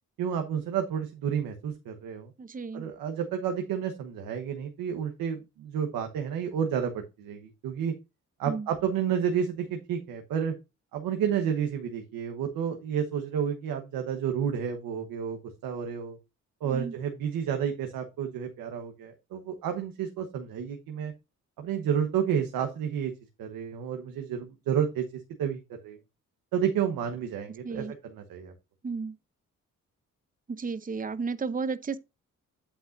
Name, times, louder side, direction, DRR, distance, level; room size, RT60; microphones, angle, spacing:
voice 1, 0.2-2.3 2.7-7.9 8.4-10.5 10.9-16.2 16.6-21.1 21.6-23.1 23.4-25.0 25.4-26.0 26.5-28.5, right 8 dB, 90° right, 1.1 m, -30 dB
voice 2, 2.4-2.8 8.5-8.7 16.6-16.9 27.6-27.9 28.8-29.1 30.5-32.0, right 4 dB, 25° right, 0.8 m, -33 dB
8.7 x 7.9 x 2.6 m
supercardioid pair, 55°, 33 cm